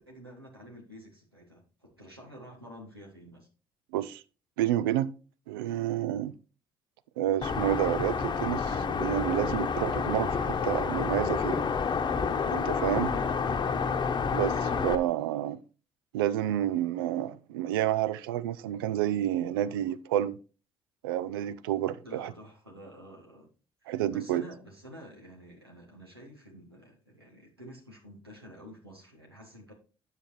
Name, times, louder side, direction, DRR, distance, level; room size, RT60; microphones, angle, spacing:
voice 1, 0.0-3.5 13.0-13.7 22.0-23.5 23.8-29.7, equal, 90° right, 1.7 m, -49 dB
voice 2, 3.9-4.2 4.6-5.1 5.5-6.3 7.2-11.6 12.5-13.1 14.3-15.6 16.1-20.4 21.0-22.3 23.9-24.4, right 12 dB, 70° right, 0.5 m, -29 dB
sound 1, 7.4-14.9, left 5 dB, 35° left, 1.0 m, -29 dB
9.8 x 7.4 x 3.1 m
figure-of-eight pair, 45°, 12 cm